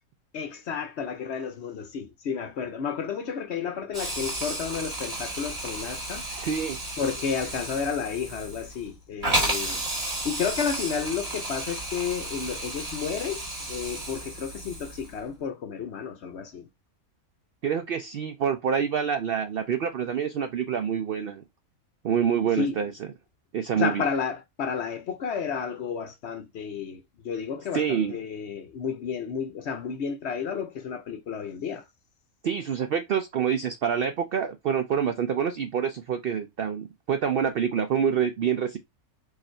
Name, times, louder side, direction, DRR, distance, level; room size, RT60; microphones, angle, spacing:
voice 1, 0.3-6.3 7.0-9.8 10.1-16.7 22.6-22.8 23.8-31.8, left 6 dB, 60° left, 0.8 m, -32 dB
Hiss, 3.9-15.2, right 1 dB, 25° right, 1.7 m, -33 dB
voice 2, 6.3-6.8 17.6-21.4 22.0-23.1 23.5-24.0 27.7-28.2 32.4-38.8, right 7 dB, 75° right, 0.5 m, -27 dB
4.7 x 2.5 x 4.4 m
omnidirectional pair, 1.5 m